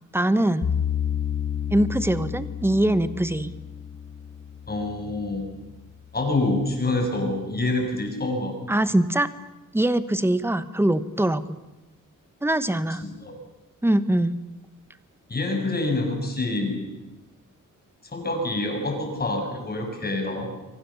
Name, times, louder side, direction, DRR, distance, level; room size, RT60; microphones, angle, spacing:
voice 1, 0.1-0.7 1.7-3.5 8.7-9.3 9.7-11.6 12.4-13.1 13.8-14.4, right 1 dB, 5° right, 13 dB, 1.1 m, -22 dB
sound 1, 0.6-5.7, left 8 dB, 85° left, 3.2 m, -31 dB
voice 2, 4.7-5.5 6.1-8.5 13.0-13.3 15.3-16.8 18.1-20.5, left 2 dB, 30° left, 2 dB, 6.5 m, -26 dB
28.5 x 24.5 x 7.1 m, 1.0 s
wide cardioid pair, 175°, 32 cm